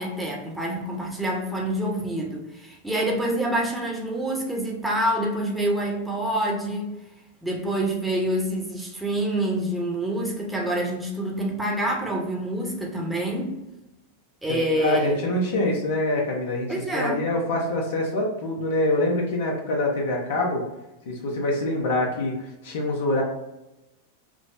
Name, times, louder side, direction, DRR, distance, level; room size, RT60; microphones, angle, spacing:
voice 1, 0.0-6.9 7.4-13.5 14.4-15.2 15.5-15.7 16.7-17.2, right 1 dB, 5° right, -2 dB, 0.8 m, -27 dB
voice 2, 14.5-20.6 21.1-23.2, left 1 dB, 55° left, 0 dB, 0.8 m, -25 dB
4.8 x 2.0 x 2.6 m, 0.96 s
figure-of-eight pair, 90°, 0 cm